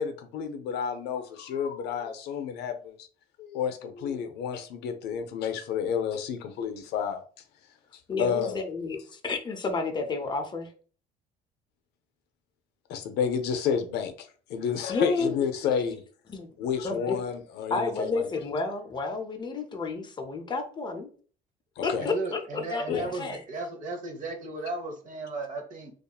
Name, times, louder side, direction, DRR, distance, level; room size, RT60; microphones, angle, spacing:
voice 1, 0.0-3.0 3.4-7.2 8.2-8.6 12.9-16.0 16.6-18.2 21.8-22.1 22.9-23.1, left 7 dB, 80° left, 8 dB, 0.5 m, -30 dB
voice 2, 8.1-10.7 14.9-15.4 16.3-16.5 16.8-17.2 17.7-21.1 21.8-23.4, left 4 dB, 25° left, 5 dB, 0.5 m, -31 dB
voice 3, 22.0-25.9, right 3 dB, 50° right, 4 dB, 0.7 m, -35 dB
2.7 x 2.3 x 2.2 m, 0.42 s
cardioid pair, 110°, 17 cm